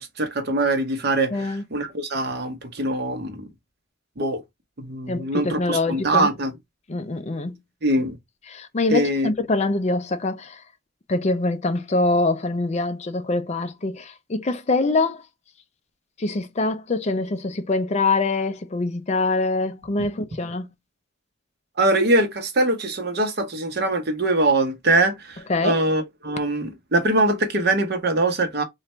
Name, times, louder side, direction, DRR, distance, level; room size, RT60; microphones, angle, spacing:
voice 1, 0.0-3.5 4.2-4.4 4.8-6.5 7.8-8.2 8.9-9.3 21.8-28.6, right 2 dB, 55° right, 0.9 m, -23 dB
voice 2, 1.3-1.6 5.1-6.3 6.9-7.6 8.5-10.6 11.1-15.2 16.2-20.7 25.5-25.8, left 3 dB, 35° left, 0.5 m, -24 dB
3.2 x 2.5 x 4.2 m
head